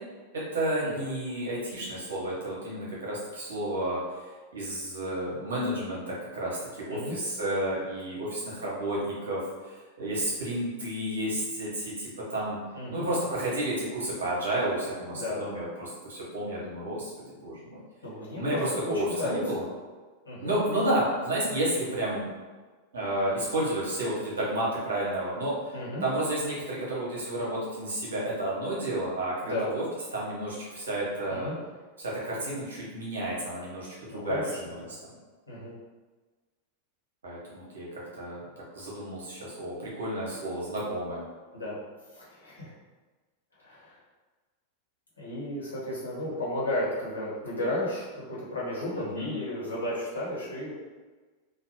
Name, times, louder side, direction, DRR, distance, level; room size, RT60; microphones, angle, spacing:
voice 1, 0.3-4.0 4.5-9.4 10.0-12.6 12.9-17.1 17.4-17.8 18.3-19.6 20.4-22.2 22.9-25.7 26.0-29.8 30.1-31.5 32.0-34.4 37.2-37.9 38.1-41.2 48.9-49.3, right 1 dB, 65° right, -6 dB, 1.2 m, -31 dB
voice 2, 12.7-13.1 15.1-15.6 18.0-18.6 19.1-19.5 20.2-20.6 25.7-26.0 29.4-29.7 31.3-31.5 34.1-34.9 35.5-35.7 41.0-41.1 41.5-41.8 42.1-42.7 43.6-43.9 45.2-50.7, left 1 dB, 75° left, -8 dB, 1.2 m, -34 dB
3.2 x 2.2 x 3.0 m, 1.3 s
figure-of-eight pair, 90°, 0 cm